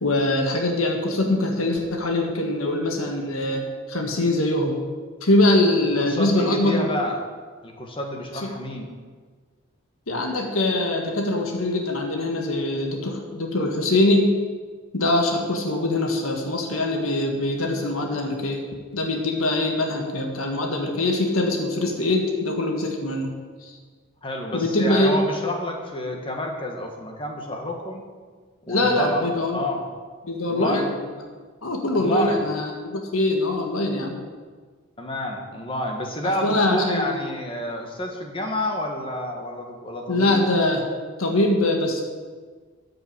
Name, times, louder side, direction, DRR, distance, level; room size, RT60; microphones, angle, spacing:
voice 1, 0.0-4.8 5.2-6.9 8.4-8.5 10.1-14.3 14.9-18.6 18.9-23.3 23.6-23.7 24.5-25.2 28.7-29.6 30.3-30.9 31.6-34.2 36.2-37.2 40.1-40.8 41.2-42.0, left 1 dB, 90° left, 2 dB, 1.8 m, -23 dB
voice 2, 6.0-7.2 7.6-8.9 24.2-28.0 28.6-29.8 30.5-30.9 31.9-32.4 35.0-40.4, left 1 dB, 25° left, 2 dB, 1.6 m, -29 dB
13.5 x 6.8 x 8.8 m, 1.5 s
head